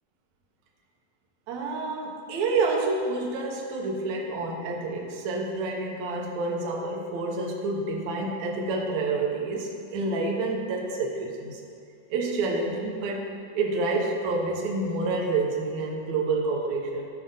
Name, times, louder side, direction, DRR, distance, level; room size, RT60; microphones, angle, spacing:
voice 1, 1.5-11.6 12.1-13.2 13.5-17.1, right 3 dB, 65° right, -1 dB, 2.2 m, -28 dB
14.5 x 5.0 x 3.9 m, 2.3 s
omnidirectional pair, 3.7 m